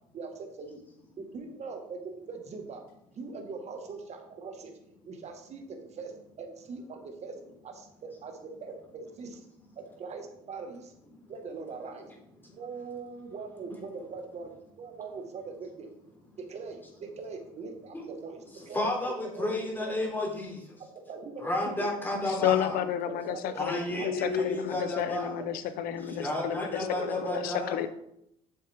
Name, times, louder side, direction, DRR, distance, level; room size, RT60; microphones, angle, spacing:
voice 1, 0.1-0.8 1.2-2.8 3.1-4.7 5.1-7.4 7.6-9.4 9.8-10.9 11.3-12.1 12.5-14.5 14.8-15.9 16.4-18.9 19.2-19.5 19.8-20.0 20.9-21.9 23.1-23.6 24.0-24.1 25.4-25.5 26.4-26.5 27.0-27.2, right 4 dB, 45° right, 4 dB, 1.7 m, -41 dB
voice 2, 18.7-20.8 21.4-22.8 23.6-25.4 26.1-27.9, left 2 dB, 15° left, -2 dB, 3.5 m, -31 dB
voice 3, 22.3-27.9, left 11 dB, 70° left, 12 dB, 0.8 m, -31 dB
8.0 x 7.5 x 3.6 m, 0.76 s
supercardioid pair, 90°, 16 cm